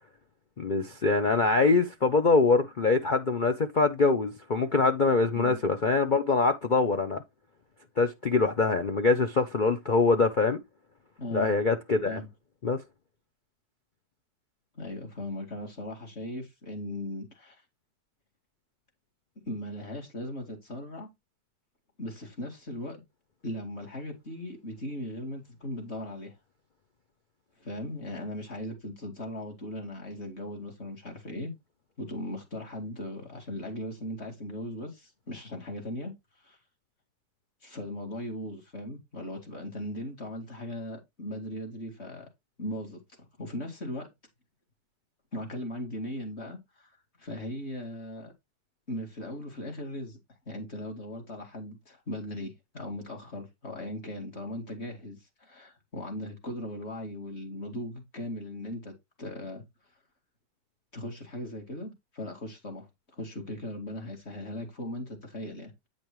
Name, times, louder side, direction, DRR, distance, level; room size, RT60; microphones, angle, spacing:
voice 1, 0.6-7.2 8.0-10.6 11.3-12.2 12.6-12.8, left 3 dB, 60° left, 0.5 m, -24 dB
voice 2, 11.2-11.5 12.1-12.3 14.7-17.6 19.4-21.1 22.0-23.0 23.4-26.3 27.6-31.5 32.0-36.1 36.4-36.6 37.6-42.3 42.6-44.1 45.3-46.9 47.2-48.3 48.9-50.2 50.5-59.6 60.9-65.7, left 1 dB, 40° left, 2.6 m, -38 dB
9.0 x 5.2 x 3.1 m
omnidirectional pair, 1.9 m